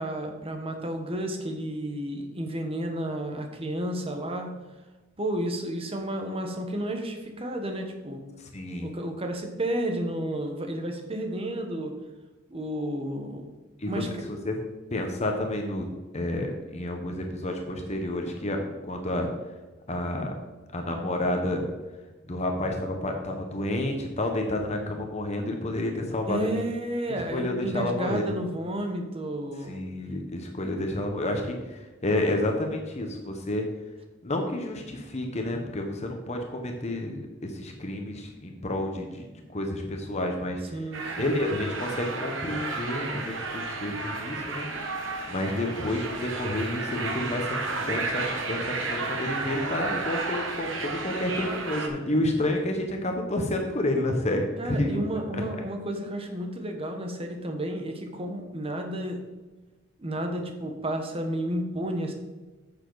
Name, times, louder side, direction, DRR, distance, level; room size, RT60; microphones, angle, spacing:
voice 1, 0.0-4.5 5.2-8.2 8.8-12.0 12.5-13.5 13.9-14.1 26.3-29.8 40.7-41.6 54.6-59.2 60.0-62.1, right 1 dB, 30° right, 4 dB, 1.2 m, -32 dB
voice 2, 8.4-8.9 13.8-14.6 14.9-15.9 16.1-19.3 19.9-20.3 20.7-21.7 22.3-26.5 27.3-28.4 29.7-33.7 34.2-39.3 39.5-40.6 41.2-44.7 45.3-55.0 55.3-55.4, left 1 dB, 35° left, 3 dB, 1.0 m, -30 dB
sound 1, 40.9-51.9, right 3 dB, 75° right, 1.3 m, -32 dB
9.8 x 6.8 x 4.0 m, 1.2 s
head